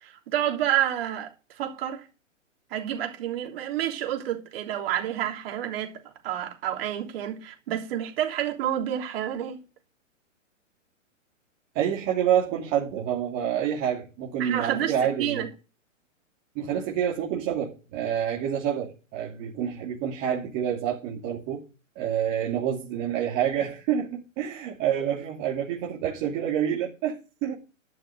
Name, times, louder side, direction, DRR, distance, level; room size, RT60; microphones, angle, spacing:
voice 1, 0.0-2.1 2.7-5.9 6.2-9.6 14.4-15.5, right 11 dB, 50° right, 3.4 m, -29 dB
voice 2, 11.7-15.5 16.5-21.6 21.9-27.5, right 9 dB, 30° right, 2.8 m, -28 dB
11.5 x 6.6 x 6.5 m
hypercardioid pair, 135°, 39 cm